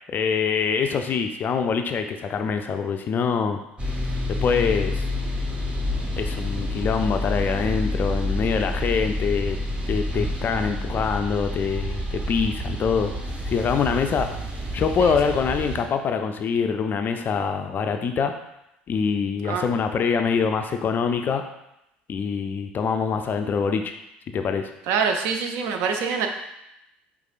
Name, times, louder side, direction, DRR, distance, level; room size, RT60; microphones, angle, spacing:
voice 1, 0.1-3.6 4.3-5.1 6.2-9.6 9.9-13.1 13.5-14.3 14.7-18.3 18.9-21.4 22.1-23.9 24.3-24.7, left 6 dB, 35° left, 6 dB, 0.3 m, -24 dB
sound 1, 3.8-15.8, left 1 dB, 20° right, 0.9 m, -28 dB
voice 2, 24.9-26.3, right 6 dB, 55° right, 4 dB, 0.5 m, -25 dB
4.9 x 3.4 x 2.4 m, 0.84 s
figure-of-eight pair, 60°, 5 cm